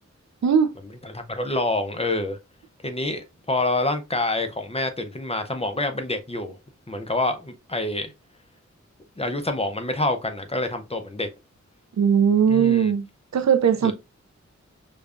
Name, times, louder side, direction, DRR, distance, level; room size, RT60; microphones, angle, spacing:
voice 1, 0.4-0.7 12.0-13.0 13.3-13.9, right 7 dB, 65° right, 0.4 m, -19 dB
voice 2, 1.0-2.4 2.8-6.6 6.9-8.1 9.2-11.3 12.5-12.9 13.8-13.9, left 2 dB, 20° left, 0.6 m, -27 dB
5.1 x 2.3 x 2.4 m
wide cardioid pair, 85°, 29 cm